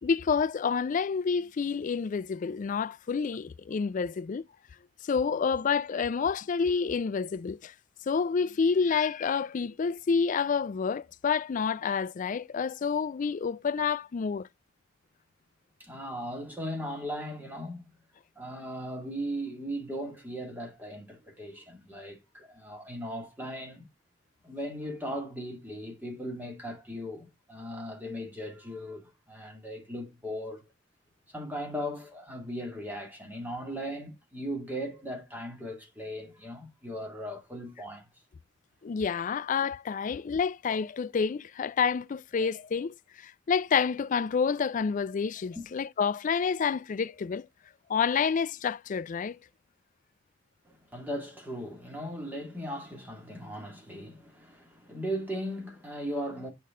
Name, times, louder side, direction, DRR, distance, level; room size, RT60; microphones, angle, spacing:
voice 1, 0.0-4.4 5.0-7.7 8.1-14.5 38.8-47.5 47.9-49.4, left 6 dB, 40° left, 0.3 m, -28 dB
voice 2, 15.8-17.9 18.4-23.9 24.4-30.6 31.3-38.1 45.6-45.7 50.6-56.5, equal, 10° right, 2.1 m, -38 dB
8.4 x 5.4 x 3.7 m
head